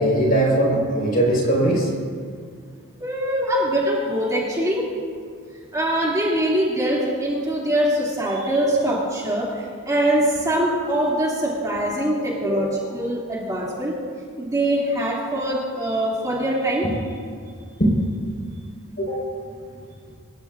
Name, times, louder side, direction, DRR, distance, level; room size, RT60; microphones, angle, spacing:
voice 1, 0.0-1.9 3.4-3.6 12.4-12.6 17.8-17.9 18.9-19.2, right 1 dB, 45° left, -2 dB, 4.7 m, -20 dB
voice 2, 3.0-4.8 5.7-9.5 9.8-14.0 14.4-16.9, right 1 dB, 15° right, -6 dB, 2.7 m, -23 dB
25.5 x 15.0 x 2.6 m, 2.1 s
head